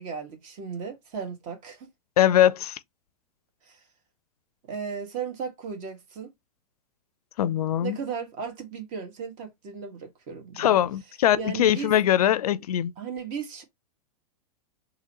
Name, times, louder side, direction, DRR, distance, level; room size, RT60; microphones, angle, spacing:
voice 1, 0.0-1.9 3.6-3.8 4.7-6.3 7.8-10.8 11.4-11.9 13.0-13.6, right 6 dB, 40° right, 1.6 m, -36 dB
voice 2, 2.2-2.8 7.4-8.0 10.6-12.9, left 11 dB, 75° left, 0.4 m, -22 dB
3.8 x 2.9 x 2.9 m
hypercardioid pair, 105°, 20 cm